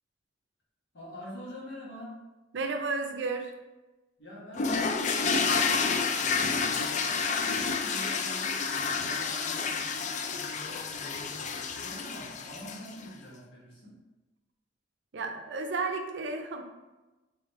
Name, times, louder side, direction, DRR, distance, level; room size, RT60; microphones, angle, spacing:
voice 1, 0.9-2.2 4.2-13.9, equal, 65° left, -5 dB, 1.4 m, -46 dB
voice 2, 2.5-3.5 15.1-16.6, right 3 dB, 70° right, 5 dB, 0.5 m, -32 dB
sound 1, 4.6-13.0, left 5 dB, 40° left, 0.3 m, -29 dB
3.9 x 3.4 x 3.0 m, 1.1 s
head